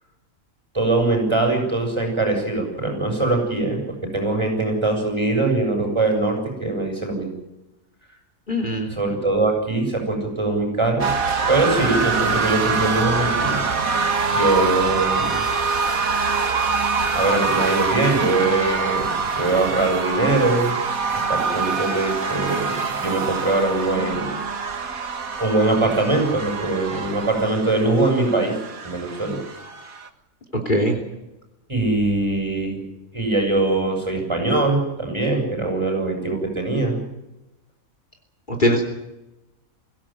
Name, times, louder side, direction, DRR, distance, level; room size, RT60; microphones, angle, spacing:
voice 1, 0.7-7.3 8.9-11.1 11.5-13.6 14.3-15.4 17.1-20.7 21.3-24.3 25.4-28.6 28.8-29.4 31.7-32.8 33.1-37.0, right 2 dB, 20° right, 2 dB, 7.7 m, -22 dB
voice 2, 8.5-8.9 30.6-31.0 38.5-38.8, equal, 35° left, 4 dB, 3.2 m, -20 dB
sound 1, 11.0-30.1, right 4 dB, 75° right, 2.2 m, -24 dB
24.5 x 17.0 x 9.1 m, 0.95 s
omnidirectional pair, 1.5 m